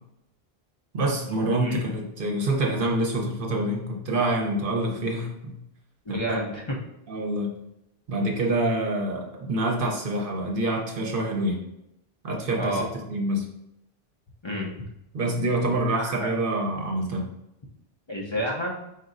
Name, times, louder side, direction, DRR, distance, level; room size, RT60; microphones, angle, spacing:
voice 1, 0.9-5.6 6.1-6.4 7.1-7.5 8.1-11.6 12.2-13.4 15.1-17.3, right 1 dB, 60° right, 1 dB, 1.0 m, -26 dB
voice 2, 6.1-6.8 12.6-12.9 14.4-14.7 15.9-16.3 18.1-18.8, equal, 30° left, -4 dB, 0.6 m, -30 dB
5.1 x 4.1 x 2.5 m, 0.84 s
omnidirectional pair, 1.1 m